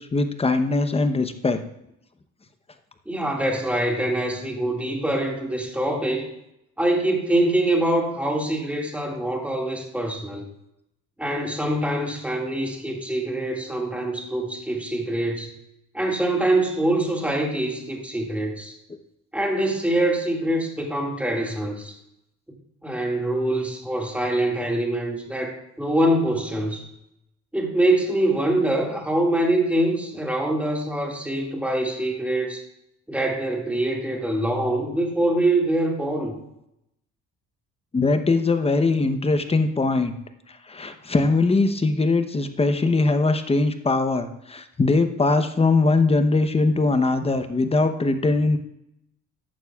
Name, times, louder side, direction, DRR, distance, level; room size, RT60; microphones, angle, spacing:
voice 1, 0.0-1.6 37.9-40.1 40.7-48.6, left 3 dB, 20° left, 8 dB, 0.8 m, -21 dB
voice 2, 3.1-6.3 6.8-10.5 11.2-15.5 15.9-18.7 19.3-22.0 22.5-22.6 22.8-26.9 27.5-32.6 33.1-36.4, right 1 dB, 5° right, 0 dB, 2.0 m, -24 dB
13.5 x 9.5 x 2.4 m, 0.83 s
cardioid pair, 120°, 32 cm